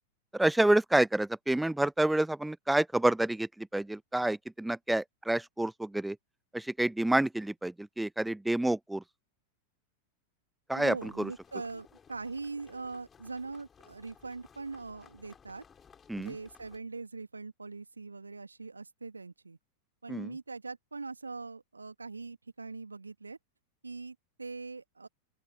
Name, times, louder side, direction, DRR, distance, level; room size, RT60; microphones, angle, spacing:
voice 1, 0.3-6.2 6.5-9.0 10.7-11.3 16.1-16.3 20.1-20.3, right 1 dB, 5° right, 0.7 m, -28 dB
voice 2, 10.7-15.6 16.2-19.6 20.0-23.4 23.8-25.1, right 4 dB, 80° right, 2.0 m, -42 dB
sound 1, 11.0-16.8, left 7 dB, 20° left, 5.2 m, -59 dB
open air
figure-of-eight pair, 90°, 0 cm